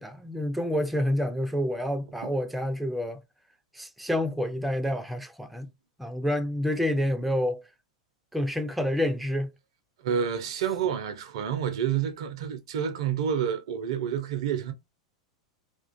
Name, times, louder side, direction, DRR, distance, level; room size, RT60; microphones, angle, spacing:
voice 1, 0.0-3.2 3.7-5.7 6.0-7.6 8.3-9.5, left 1 dB, ahead, 0.3 m, -28 dB
voice 2, 10.0-14.7, right 8 dB, 60° right, 0.4 m, -29 dB
2.4 x 2.2 x 2.4 m
figure-of-eight pair, 90°, 3 cm